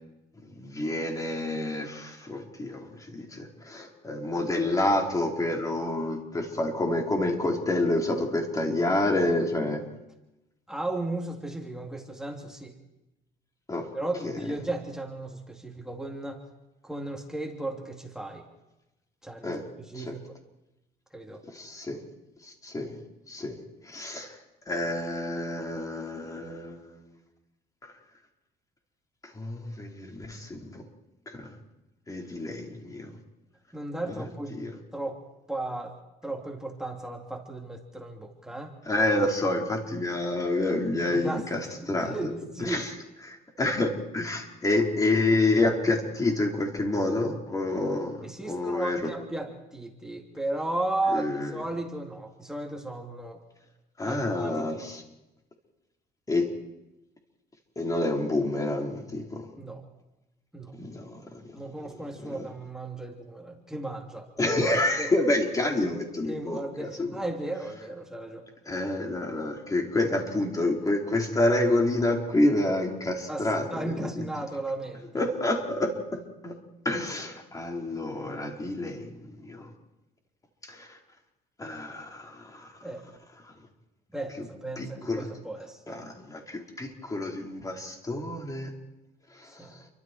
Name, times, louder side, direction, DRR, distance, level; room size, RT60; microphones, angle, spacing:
voice 1, 0.5-9.8 13.7-13.9 14.2-14.4 19.4-19.6 19.9-20.2 21.5-22.0 22.4-23.0 23.3-23.6 23.8-24.3 24.7-27.0 27.8-27.9 29.3-30.8 31.3-31.5 32.1-33.1 34.1-34.2 34.5-34.7 38.9-42.1 42.6-42.9 43.2-49.1 51.1-51.5 54.0-55.0 56.3-56.5 57.8-59.5 60.8-61.2 62.3-62.5 64.4-67.2 68.7-74.1 75.1-76.6 76.8-79.7 80.6-80.9 81.6-82.7 84.8-85.3 85.9-88.7 89.3-89.8, left 2 dB, 20° left, 1 dB, 4.8 m, -28 dB
voice 2, 10.7-12.7 13.9-16.4 16.8-18.4 19.2-19.5 19.9-20.2 21.1-21.4 33.7-34.6 34.9-35.2 35.5-35.9 36.2-38.7 41.1-41.4 41.8-42.9 48.2-53.4 54.0-54.8 59.6-59.9 60.5-60.8 61.5-64.5 65.0-65.1 66.3-68.5 73.3-75.3 82.8-83.0 84.1-86.0 89.4-89.7, right 2 dB, 5° right, 1 dB, 3.3 m, -35 dB
29.5 x 25.0 x 4.8 m, 0.97 s
cardioid pair, 110°, 17 cm